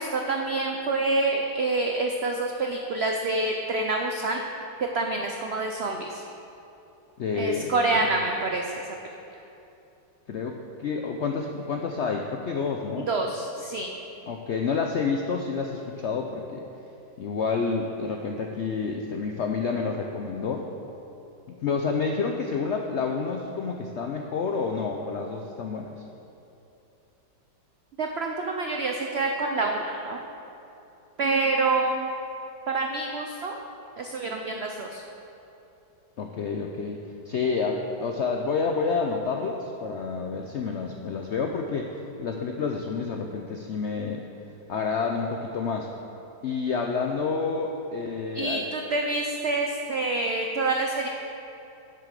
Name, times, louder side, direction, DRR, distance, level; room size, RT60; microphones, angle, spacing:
voice 1, 0.0-4.4 4.8-6.2 7.3-8.7 13.1-13.9 28.0-30.2 31.2-32.1 32.7-33.6 34.0-35.0 48.3-51.1, right 3 dB, 90° right, 2 dB, 0.5 m, -27 dB
voice 2, 7.2-7.7 10.3-13.1 14.3-16.6 17.2-20.7 21.5-25.9 36.2-37.0 37.3-41.9 42.2-44.2 44.7-45.9 46.4-48.6, left 5 dB, 80° left, 3 dB, 0.6 m, -29 dB
7.7 x 7.6 x 6.6 m, 2.9 s
omnidirectional pair, 1.9 m